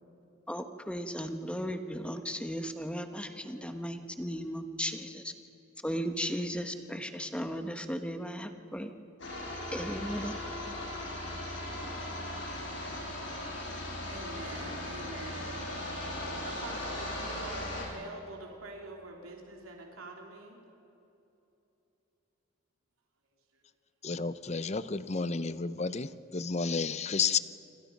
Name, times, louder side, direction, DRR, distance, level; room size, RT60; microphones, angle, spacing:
voice 1, 0.5-5.3 5.8-8.9 9.7-10.3, equal, 5° left, 7 dB, 1.2 m, -36 dB
sound 1, 9.2-17.9, left 1 dB, 60° left, 6.2 m, -38 dB
voice 2, 13.6-20.6 23.5-23.6, right 2 dB, 90° right, 0 dB, 3.3 m, -46 dB
voice 3, 24.0-27.4, left 5 dB, 30° left, 14 dB, 0.6 m, -31 dB
27.5 x 25.5 x 5.3 m, 3.0 s
head